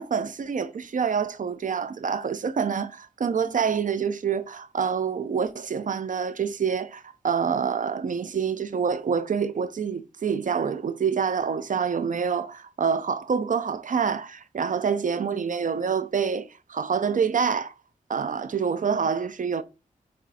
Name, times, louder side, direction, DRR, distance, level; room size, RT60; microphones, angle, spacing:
voice 1, 0.0-17.7 18.1-19.6, right 6 dB, 65° right, 0.7 m, -27 dB
7.6 x 3.6 x 4.1 m
wide cardioid pair, 80°, 15 cm